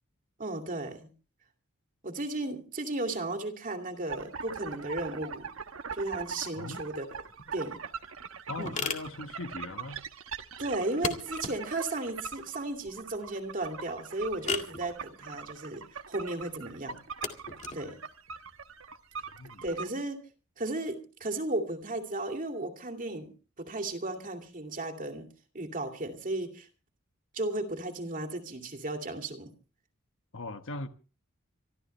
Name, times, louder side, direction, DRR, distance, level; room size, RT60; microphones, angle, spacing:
voice 1, 0.4-1.1 2.0-5.5 5.9-7.1 7.5-7.8 8.6-8.7 10.6-17.0 17.7-18.0 19.6-20.2 20.6-23.3 23.6-25.3 25.5-26.7 27.3-29.5, right 2 dB, 40° right, 2.6 m, -35 dB
sound 1, 4.1-19.9, right 5 dB, 65° right, 1.1 m, -42 dB
sound 2, 7.3-19.7, left 5 dB, 35° left, 1.9 m, -41 dB
voice 2, 8.5-10.0 17.8-17.9 19.3-19.7 30.3-30.9, left 2 dB, 65° left, 1.3 m, -39 dB
26.0 x 13.0 x 3.3 m
head